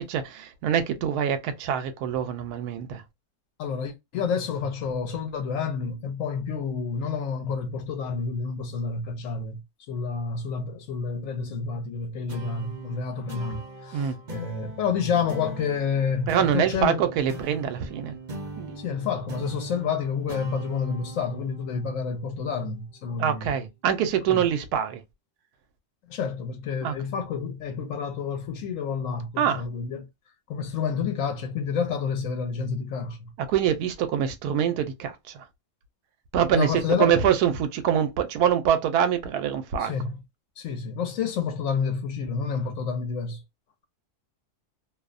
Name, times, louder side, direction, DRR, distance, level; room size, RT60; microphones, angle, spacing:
voice 1, 0.0-3.0 13.9-14.2 16.3-18.2 18.6-18.8 23.2-25.0 26.8-26.9 29.4-29.6 33.5-35.4 36.3-36.7 37.0-39.9, right 9 dB, 85° right, 1.1 m, -25 dB
voice 2, 3.6-9.6 9.9-17.0 18.8-23.6 24.3-24.5 26.0-30.1 30.5-33.3 36.5-37.1 39.8-40.2 40.6-43.4, left 6 dB, 70° left, 0.9 m, -29 dB
sound 1, 12.3-23.1, right 3 dB, 50° right, 0.6 m, -40 dB
2.6 x 2.0 x 2.4 m
omnidirectional pair, 1.6 m